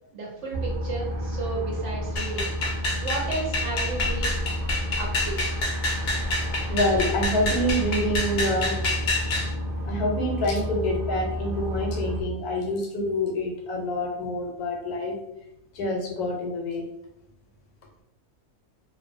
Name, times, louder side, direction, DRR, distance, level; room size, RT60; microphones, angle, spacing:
voice 1, 0.1-2.7 3.0-4.4 5.0-5.4, right 3 dB, 60° right, -2 dB, 0.9 m, -33 dB
sound 1, 0.5-12.2, equal, 80° right, 0.4 m, -30 dB
sound 2, 2.2-9.5, left 2 dB, 60° left, 0.7 m, -28 dB
voice 2, 6.7-8.8 9.8-15.1 15.7-16.9, left 1 dB, 85° left, 0 dB, 1.2 m, -27 dB
2.7 x 2.0 x 2.6 m, 0.87 s
omnidirectional pair, 1.6 m